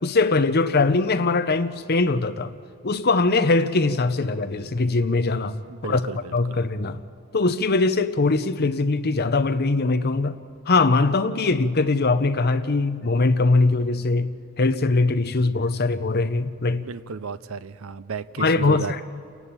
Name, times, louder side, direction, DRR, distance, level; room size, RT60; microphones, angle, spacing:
voice 1, 0.0-2.5 2.8-5.6 5.8-6.0 6.3-7.0 7.3-10.4 10.7-14.3 14.6-16.8 18.4-19.0, left 3 dB, 45° left, 0.8 m, -21 dB
voice 2, 5.7-6.6 16.8-19.0, right 5 dB, 65° right, 0.5 m, -34 dB
29.0 x 11.0 x 8.9 m
head